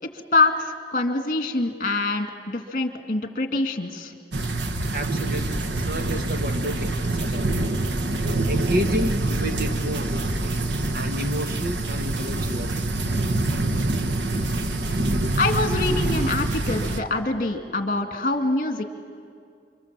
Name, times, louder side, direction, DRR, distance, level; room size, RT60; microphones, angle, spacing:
voice 1, 0.0-4.1 15.3-18.8, left 2 dB, 50° left, 2.1 m, -25 dB
sound 1, 4.3-17.0, right 2 dB, 90° right, 1.2 m, -25 dB
voice 2, 4.9-7.5 8.5-10.1 10.9-12.8 15.2-15.3, equal, 55° right, 1.5 m, -31 dB
28.5 x 25.5 x 7.5 m
head